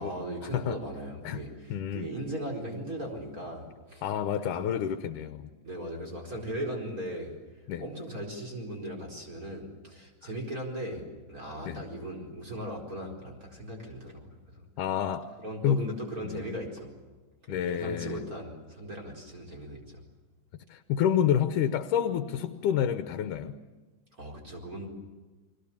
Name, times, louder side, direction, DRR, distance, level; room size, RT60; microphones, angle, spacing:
voice 1, 0.0-4.0 4.4-4.7 5.6-7.3 7.8-14.6 15.4-16.9 17.5-20.0 24.2-24.9, right 1 dB, 25° right, 0 dB, 4.8 m, -38 dB
voice 2, 1.7-2.1 4.0-5.5 7.7-7.8 11.7-11.8 14.8-15.3 15.6-15.9 16.2-16.3 17.5-18.2 20.7-23.6, left 9 dB, 80° left, 9 dB, 2.5 m, -28 dB
30.0 x 22.0 x 7.2 m, 1.3 s
omnidirectional pair, 3.6 m